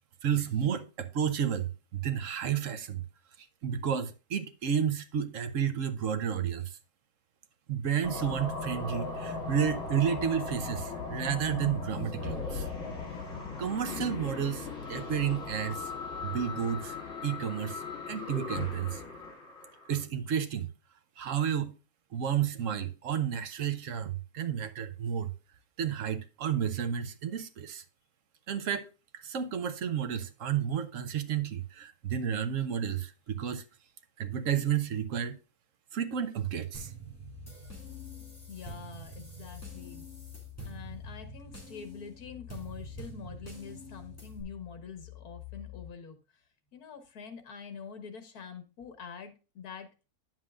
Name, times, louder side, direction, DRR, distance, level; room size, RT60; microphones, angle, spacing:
voice 1, 0.2-3.0 3.6-6.8 7.7-12.7 13.6-15.9 16.2-17.0 17.2-19.0 19.9-20.7 21.2-21.7 22.1-25.3 25.8-27.8 28.5-28.9 29.1-33.6 34.2-35.4 35.9-36.9, right 8 dB, 60° right, 1.1 m, -31 dB
sound 1, 8.0-20.0, left 4 dB, 45° left, 2.6 m, -38 dB
sound 2, 36.7-44.4, right 3 dB, 10° left, 2.6 m, -47 dB
sound 3, 37.2-45.9, left 16 dB, 85° right, 2.0 m, -49 dB
voice 2, 38.2-40.1 40.6-46.4 46.7-49.9, left 6 dB, 75° left, 1.9 m, -45 dB
9.4 x 7.5 x 2.4 m
omnidirectional pair, 1.6 m